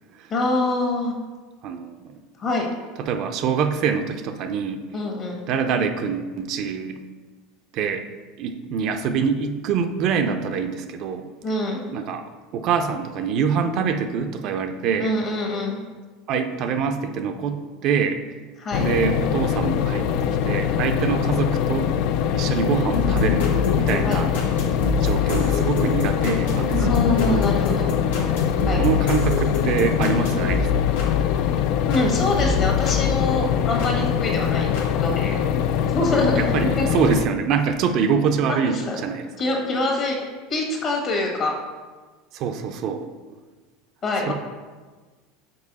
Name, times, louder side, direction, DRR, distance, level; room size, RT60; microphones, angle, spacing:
voice 1, 0.3-1.1 2.4-2.7 4.9-5.4 11.4-11.8 15.0-15.7 18.6-18.8 24.0-24.2 26.8-27.9 28.6-28.8 31.8-34.7 35.0-35.4 35.9-36.4 36.7-36.9 38.5-39.0 39.4-40.2 40.5-41.5 44.0-44.3, left 2 dB, 45° left, 1 dB, 1.4 m, -24 dB
voice 2, 1.6-2.1 3.0-4.8 5.5-7.0 7.7-8.0 8.4-11.3 11.9-12.2 12.5-15.1 16.3-18.2 18.8-21.9 22.3-23.4 23.8-24.4 25.0-26.9 28.8-30.9 36.4-39.3 42.3-43.1 44.3-44.4, right 6 dB, 55° right, 7 dB, 0.5 m, -25 dB
sound 1, 18.7-37.2, left 8 dB, 60° left, 0.3 m, -23 dB
sound 2, 22.9-32.1 32.4-34.0 34.7-34.8, left 5 dB, 85° left, 1.3 m, -26 dB
5.3 x 4.5 x 4.0 m, 1.4 s
supercardioid pair, 105°, 0 cm